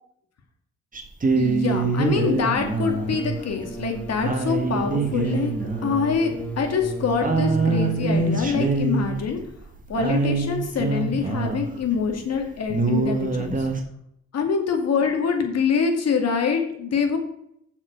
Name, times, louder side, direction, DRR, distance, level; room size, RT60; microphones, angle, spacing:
sound 1, 0.9-12.0 12.4-12.5 12.7-13.8, right 3 dB, 25° right, 1.9 m, -25 dB
voice 1, 1.4-5.5 5.8-9.4 9.9-13.7 14.3-17.2, left 5 dB, 55° left, 4 dB, 2.5 m, -25 dB
sound 2, 2.7-8.7, right 4 dB, 5° left, 2.6 m, -34 dB
7.4 x 6.1 x 6.8 m, 0.72 s
cardioid pair, 90°, 30 cm